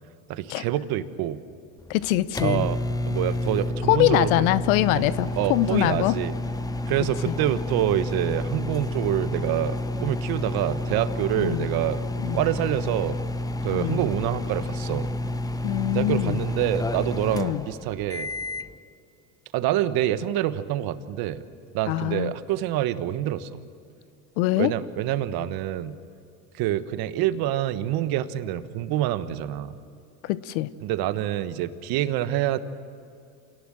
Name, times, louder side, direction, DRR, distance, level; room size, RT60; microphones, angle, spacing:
voice 1, 0.3-1.4 2.4-2.8 3.0-4.5 5.0-5.1 5.4-6.3 6.9-12.0 12.3-13.2 13.6-15.1 15.9-18.3 19.5-21.4 21.7-23.6 24.6-26.0 26.5-29.7 30.8-32.6, right 12 dB, 55° right, 12 dB, 1.4 m, -26 dB
sound 1, 1.8-18.7, left 1 dB, 10° left, 0.8 m, -30 dB
voice 2, 1.9-2.7 3.9-6.2 7.3-7.4 11.4-11.6 12.2-12.4 13.7-14.0 15.6-16.4 17.3-17.6 21.9-22.3 24.4-24.7 30.2-30.7, left 15 dB, 70° left, 16 dB, 0.9 m, -23 dB
27.5 x 18.5 x 7.6 m, 2.4 s
supercardioid pair, 95°, 43 cm